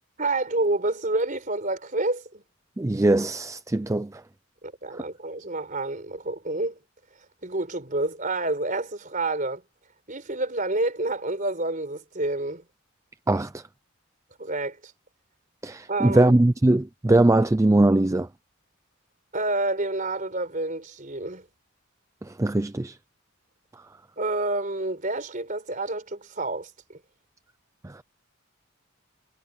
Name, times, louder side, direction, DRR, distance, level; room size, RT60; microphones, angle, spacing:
voice 1, 0.2-2.4 4.8-6.8 7.4-9.6 10.1-12.6 14.4-14.9 15.9-16.4 19.3-21.4 24.2-27.0, right 2 dB, 35° right, 4.3 m, -28 dB
voice 2, 2.8-4.2 4.9-5.0 13.3-13.6 15.6-18.3 22.2-23.0 27.8-28.0, right 2 dB, 15° right, 0.4 m, -21 dB
head